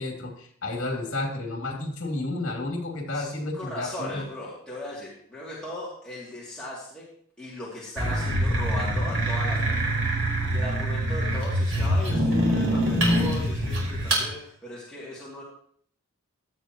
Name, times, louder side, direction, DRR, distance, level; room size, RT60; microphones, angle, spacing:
voice 1, 0.0-4.2, left 2 dB, 60° left, 1 dB, 3.1 m, -31 dB
voice 2, 3.1-7.1 7.4-10.0 10.5-15.4, left 1 dB, 5° left, -9 dB, 2.8 m, -37 dB
sound 1, 8.0-14.3, right 1 dB, 65° right, 4.9 m, -24 dB
16.5 x 12.0 x 3.1 m, 0.63 s
head